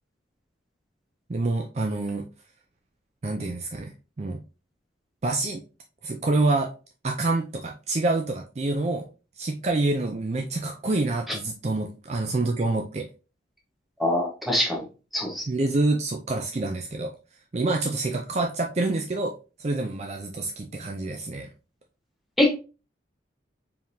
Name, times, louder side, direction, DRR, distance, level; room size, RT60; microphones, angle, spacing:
voice 1, 1.3-2.2 3.2-3.9 4.2-4.4 5.2-5.6 6.0-6.7 7.0-9.1 9.4-13.1 15.5-17.1 17.5-19.3 19.6-21.5, right 2 dB, 35° right, 3 dB, 0.4 m, -27 dB
voice 2, 14.0-14.8 15.1-15.4 22.4-22.6, left 1 dB, ahead, -1 dB, 1.2 m, -23 dB
4.6 x 3.7 x 2.7 m, 0.32 s
head